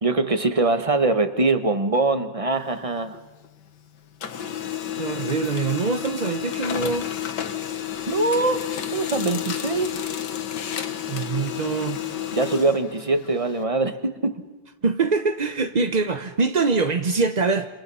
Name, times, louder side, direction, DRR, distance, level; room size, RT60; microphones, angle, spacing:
voice 1, 0.0-3.2 8.1-8.7 8.9-9.9 12.3-14.4, right 3 dB, 20° right, 1.2 m, -23 dB
Printer, 2.5-3.8 4.1-13.6, left 10 dB, 70° left, 1.8 m, -31 dB
voice 2, 5.0-7.1 11.1-12.0 14.8-17.7, right 4 dB, 40° right, 0.6 m, -24 dB
28.5 x 27.5 x 5.6 m
omnidirectional pair, 2.0 m